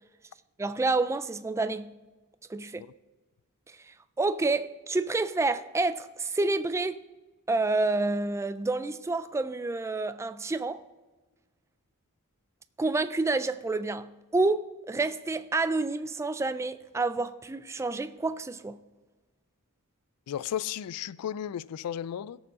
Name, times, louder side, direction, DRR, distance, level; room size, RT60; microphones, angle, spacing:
voice 1, 0.6-1.9 2.5-2.9 3.7-7.0 7.5-10.8 12.8-18.8, right 3 dB, 10° right, 0.3 m, -29 dB
voice 2, 20.3-22.4, left 10 dB, 85° left, 0.3 m, -34 dB
17.5 x 7.1 x 3.7 m
head